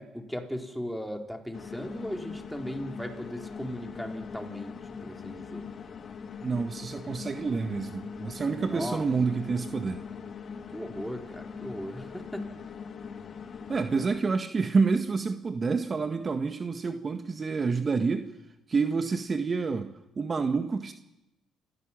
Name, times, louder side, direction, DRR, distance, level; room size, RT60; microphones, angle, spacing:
voice 1, 0.0-5.7 8.6-9.1 10.7-12.4, equal, ahead, 3 dB, 4.3 m, -37 dB
sound 1, 1.5-14.2, left 6 dB, 50° left, 1.9 m, -41 dB
voice 2, 6.4-10.0 13.7-18.3 18.7-20.9, right 4 dB, 40° right, 7 dB, 1.7 m, -28 dB
28.0 x 15.5 x 7.5 m, 0.91 s
hypercardioid pair, 60°, 0 cm